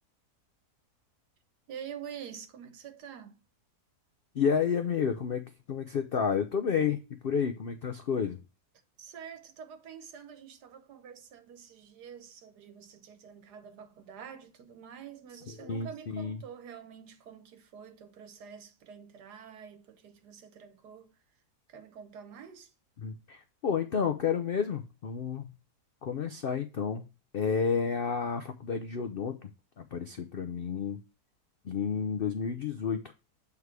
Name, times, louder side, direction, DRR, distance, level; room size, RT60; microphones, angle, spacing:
voice 1, 1.7-3.4 9.0-21.2 21.7-22.7, right 7 dB, 80° right, 1.6 m, -47 dB
voice 2, 4.3-8.4 15.5-16.4 23.0-25.5 26.0-27.1 27.3-29.5 29.8-31.0 31.6-33.0, left 6 dB, 70° left, 0.5 m, -31 dB
8.0 x 3.6 x 4.6 m
omnidirectional pair, 1.7 m